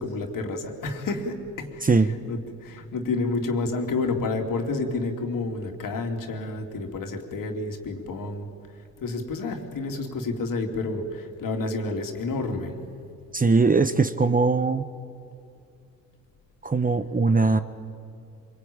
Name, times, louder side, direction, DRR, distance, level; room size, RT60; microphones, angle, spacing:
voice 1, 0.0-8.5 9.0-12.8, left 3 dB, 55° left, 3 dB, 3.3 m, -30 dB
voice 2, 1.8-2.1 13.3-14.8 16.6-17.6, right 4 dB, 20° right, 11 dB, 1.2 m, -20 dB
25.0 x 24.0 x 8.9 m, 2.4 s
hypercardioid pair, 50°, 39 cm